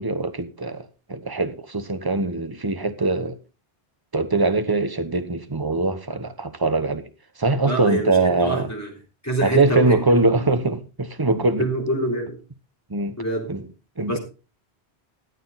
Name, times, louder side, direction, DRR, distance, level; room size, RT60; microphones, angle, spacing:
voice 1, 0.0-3.4 4.1-7.1 7.4-8.7 9.4-11.7 12.9-13.1 13.5-13.6 14.0-14.2, right 3 dB, 20° right, 1.1 m, -22 dB
voice 2, 7.6-8.9 9.2-10.0 11.6-12.4 13.2-13.5 14.1-14.2, right 1 dB, 15° left, 3.6 m, -25 dB
14.0 x 9.5 x 4.0 m
omnidirectional pair, 1.1 m